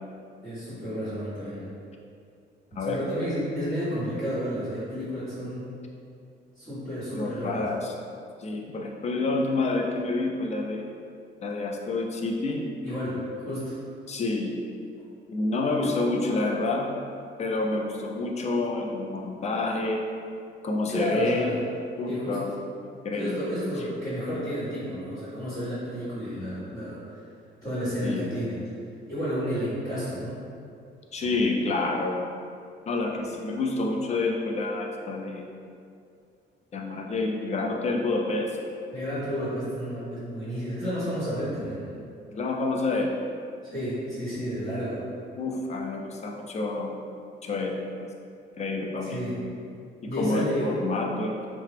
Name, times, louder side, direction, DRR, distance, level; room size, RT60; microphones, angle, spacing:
voice 1, 0.4-1.7 2.7-5.7 6.5-7.6 12.8-13.8 20.9-21.6 22.0-22.4 23.1-27.2 27.6-28.6 29.1-30.4 38.9-41.9 43.6-45.0 49.0-49.4 50.0-50.7, equal, 15° left, -15 dB, 1.5 m, -31 dB
voice 2, 7.2-7.9 8.4-10.9 11.4-12.6 14.1-14.5 15.3-16.9 17.4-20.0 20.6-21.5 22.0-22.5 22.8-23.3 28.0-28.3 31.1-32.3 32.9-35.4 36.7-38.5 42.3-43.1 45.4-46.9 47.4-48.1 48.6-49.2 50.2-51.5, left 3 dB, 35° left, 1 dB, 0.4 m, -28 dB
2.8 x 2.0 x 3.3 m, 2.4 s
cardioid pair, 90°, 20 cm